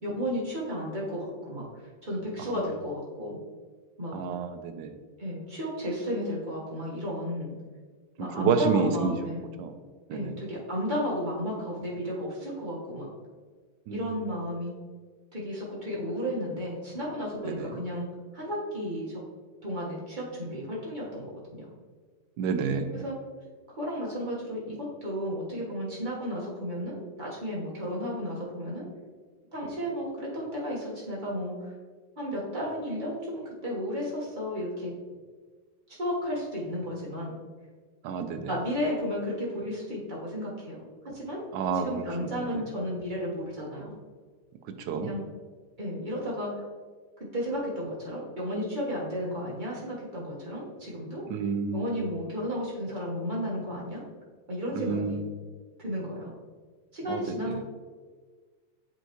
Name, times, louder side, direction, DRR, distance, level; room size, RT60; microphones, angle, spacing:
voice 1, 0.0-1.7 2.0-3.4 4.0-4.2 5.2-7.5 8.2-9.4 10.1-13.1 13.9-14.7 15.3-18.1 18.3-19.2 19.6-21.7 22.9-23.2 23.8-28.9 29.5-31.7 32.2-34.9 36.0-37.4 38.5-41.4 41.8-44.0 45.0-45.2 45.8-46.7 47.3-51.2 51.7-54.0 54.5-55.2 55.8-56.3 56.9-57.6, equal, 25° right, -5 dB, 1.3 m, -33 dB
voice 2, 4.1-5.0 8.2-9.2 9.6-9.8 10.1-10.4 13.9-14.1 17.4-17.8 22.4-23.0 38.0-38.6 41.5-42.6 44.8-45.1 51.3-51.8 54.7-55.2 57.1-57.6, right 6 dB, 70° right, 7 dB, 1.1 m, -30 dB
7.9 x 4.5 x 3.0 m, 1.5 s
omnidirectional pair, 2.2 m